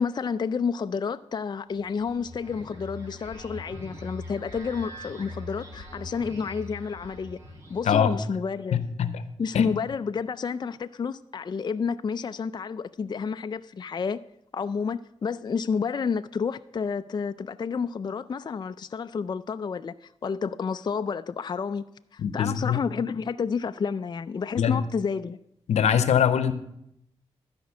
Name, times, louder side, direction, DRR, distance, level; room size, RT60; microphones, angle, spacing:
voice 1, 0.0-7.4 7.7-8.9 9.4-14.2 14.5-21.8 22.1-25.4, left 5 dB, 40° left, 0.4 m, -30 dB
sound 1, 1.7-8.4, left 1 dB, 25° right, 5.1 m, -42 dB
voice 2, 8.7-9.2 9.5-9.7 22.2-22.8 24.6-24.8 25.7-26.5, left 8 dB, 85° left, 0.8 m, -23 dB
12.5 x 5.2 x 8.1 m
cardioid pair, 65°, 11 cm